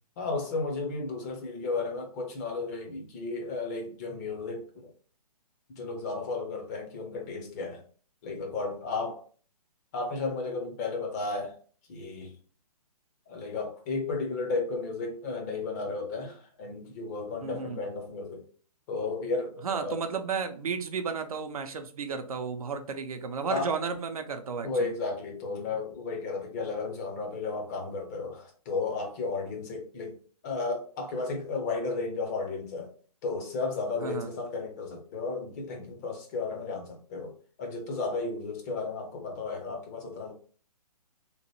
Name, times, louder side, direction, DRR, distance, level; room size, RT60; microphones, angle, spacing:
voice 1, 0.2-4.9 5.7-7.8 8.2-9.2 9.9-11.6 11.9-12.4 13.3-18.5 18.9-20.1 23.5-23.8 24.6-30.2 30.4-32.9 33.2-40.3, left 3 dB, 25° left, 0.6 m, -33 dB
voice 2, 17.4-17.8 19.6-24.9 34.0-34.3, right 5 dB, 65° right, 0.5 m, -33 dB
2.9 x 2.1 x 3.0 m
figure-of-eight pair, 135°, 20 cm